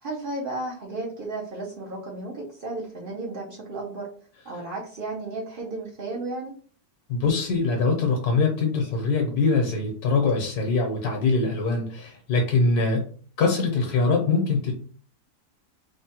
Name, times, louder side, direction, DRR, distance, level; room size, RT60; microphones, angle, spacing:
voice 1, 0.0-4.1 4.4-6.5, right 2 dB, 85° right, -2 dB, 0.4 m, -33 dB
voice 2, 7.1-13.0 13.4-14.7, left 4 dB, 75° left, 1 dB, 1.2 m, -23 dB
3.4 x 2.1 x 2.8 m, 0.43 s
omnidirectional pair, 1.7 m